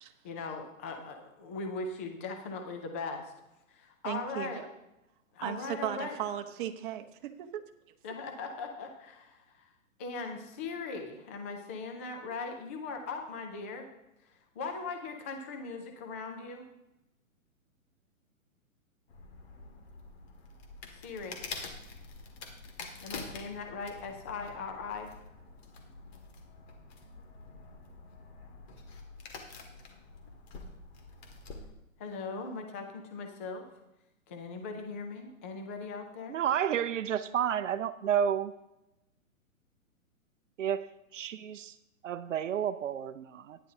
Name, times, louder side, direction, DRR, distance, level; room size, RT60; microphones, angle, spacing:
voice 1, 0.2-3.3 3.7-4.6 5.3-6.2 8.0-9.7 10.0-13.9 14.2-16.7 20.9-21.4 23.0-25.1 32.0-33.6 34.3-36.4, left 4 dB, 10° left, 4 dB, 0.3 m, -39 dB
voice 2, 4.0-4.5 5.4-7.6, right 10 dB, 35° right, 6 dB, 0.9 m, -36 dB
sound 1, 19.1-31.7, left 4 dB, 50° left, 2.0 m, -47 dB
voice 3, 36.3-38.5 40.6-41.7 42.0-43.6, right 9 dB, 65° right, 13 dB, 0.6 m, -31 dB
14.0 x 10.0 x 2.7 m, 0.91 s
hypercardioid pair, 130°, 42 cm